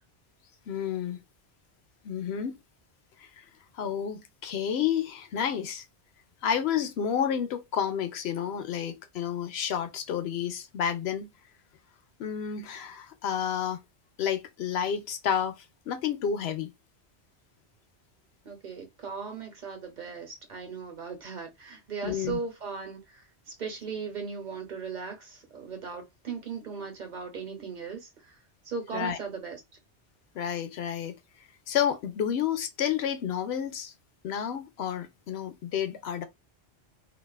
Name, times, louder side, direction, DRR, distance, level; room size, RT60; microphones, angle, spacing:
voice 1, 0.7-1.2 2.0-2.6 3.2-3.5 3.7-5.8 6.4-11.3 12.2-13.8 14.2-15.6 15.9-16.7 22.0-22.4 28.9-29.2 30.3-31.2 31.7-33.9 34.2-36.2, left 8 dB, 70° left, 0.8 m, -30 dB
voice 2, 18.4-23.2 23.6-28.4 28.6-29.6, right 5 dB, 45° right, 0.8 m, -38 dB
2.5 x 2.3 x 2.2 m
omnidirectional pair, 1.2 m